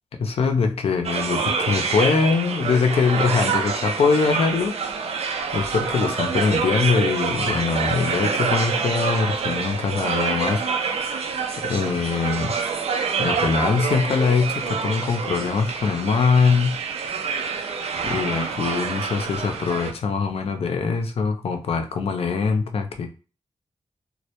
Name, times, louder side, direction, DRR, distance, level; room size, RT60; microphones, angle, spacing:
voice 1, 0.2-11.1 11.6-12.5 13.2-16.8 18.0-23.1, left 5 dB, 65° left, 0.4 m, -23 dB
sound 1, 1.0-19.9, right 5 dB, 80° right, 0.4 m, -26 dB
2.1 x 2.0 x 2.8 m
wide cardioid pair, 125°, 11 cm